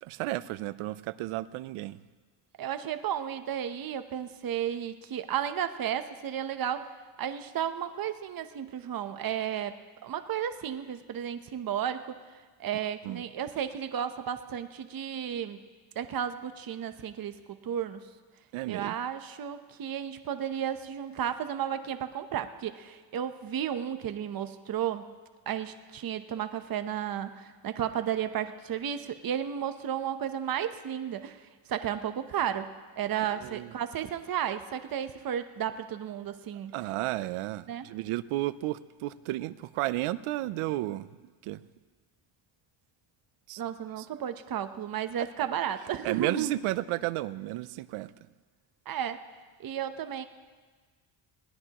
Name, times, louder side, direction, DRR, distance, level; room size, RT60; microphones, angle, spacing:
voice 1, 0.0-2.0 13.0-13.2 18.5-18.9 33.4-33.7 36.7-41.1 41.4-41.6 43.5-43.6 44.0-44.1 46.0-48.1, right 16 dB, 85° right, 17 dB, 0.6 m, -32 dB
voice 2, 2.6-6.9 7.2-12.1 12.6-15.6 16.0-18.0 18.7-25.1 25.5-36.7 37.7-37.9 43.6-46.5 48.9-49.2 49.6-50.2, right 9 dB, 45° right, 9 dB, 0.9 m, -33 dB
21.0 x 18.0 x 3.0 m, 1.4 s
cardioid pair, 105°, 49 cm